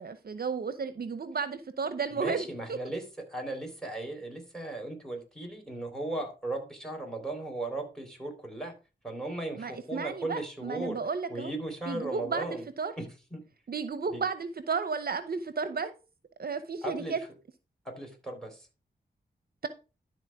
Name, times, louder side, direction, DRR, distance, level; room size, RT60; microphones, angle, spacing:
voice 1, 0.0-2.8 9.6-11.5 11.9-12.9 13.7-15.9 16.4-17.2, right 5 dB, 60° right, 0.8 m, -33 dB
voice 2, 2.1-8.7 9.0-11.0 11.3-12.7 13.0-13.1 13.3-13.4 14.1-14.2 16.8-17.1 17.8-18.7, right 2 dB, 5° left, 4.3 m, -36 dB
12.5 x 4.2 x 4.8 m
cardioid pair, 70°, 18 cm